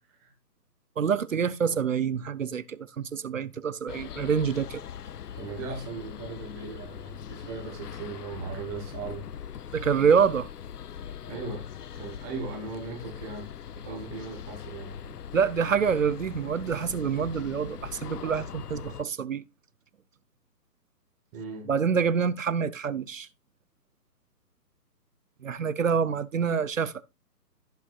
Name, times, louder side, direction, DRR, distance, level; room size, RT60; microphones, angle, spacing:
voice 1, 1.0-4.8 9.7-10.5 15.3-19.4 21.7-23.3 25.4-27.0, right 6 dB, 55° right, 0.7 m, -26 dB
sound 1, 3.9-19.0, left 8 dB, 70° left, 0.7 m, -41 dB
voice 2, 5.3-9.3 11.2-11.7 11.9-15.2 21.3-21.7, right 4 dB, 10° right, 1.1 m, -38 dB
16.0 x 5.8 x 2.3 m
hypercardioid pair, 155°, 49 cm